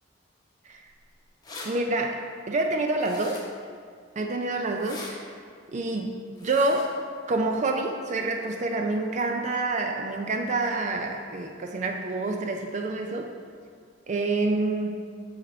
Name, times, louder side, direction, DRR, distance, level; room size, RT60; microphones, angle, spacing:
sound 1, 1.0-1.1 1.2-1.7 3.0-3.6 4.7-5.1 6.4-6.9, left 3 dB, 20° left, 0.9 m, -41 dB
voice 1, 1.6-3.5 4.2-5.2 5.7-7.0 7.3-13.3 14.1-15.1, right 2 dB, 40° right, 3 dB, 0.4 m, -27 dB
7.6 x 4.2 x 4.2 m, 2.2 s
head